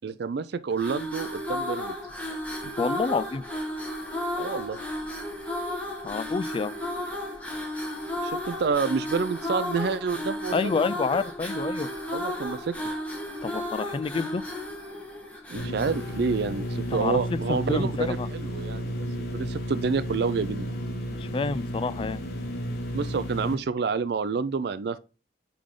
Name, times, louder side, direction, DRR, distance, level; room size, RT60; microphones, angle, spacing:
voice 1, 0.0-2.0 4.4-4.8 8.2-10.8 12.1-12.7 15.5-20.7 22.9-25.0, right 5 dB, 65° right, 0.4 m, -28 dB
sound 1, 0.7-17.2, left 1 dB, 10° left, 1.4 m, -34 dB
voice 2, 2.8-3.4 6.0-6.7 10.5-11.9 13.4-14.4 16.9-18.3 21.2-22.2, left 4 dB, 30° left, 0.3 m, -28 dB
sound 2, 15.6-23.6, equal, 65° left, 1.4 m, -32 dB
8.6 x 3.4 x 3.7 m
head